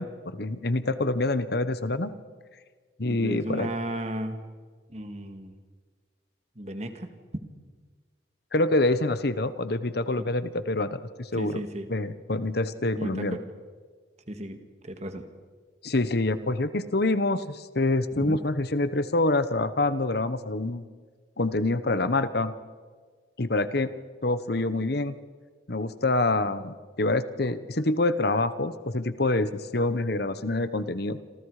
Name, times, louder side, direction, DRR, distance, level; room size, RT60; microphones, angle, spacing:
voice 1, 0.0-2.1 3.0-3.7 8.5-11.6 11.9-13.4 15.8-20.8 21.4-22.5 23.4-23.9 24.2-25.2 25.7-31.2, left 2 dB, 55° left, 13 dB, 1.1 m, -26 dB
voice 2, 3.1-4.4 4.9-5.6 6.6-7.1 10.2-10.3 11.3-11.9 13.0-13.4 14.3-15.3 18.1-18.4, right 1 dB, 35° right, 7 dB, 2.0 m, -34 dB
27.5 x 27.0 x 5.0 m, 1.5 s
head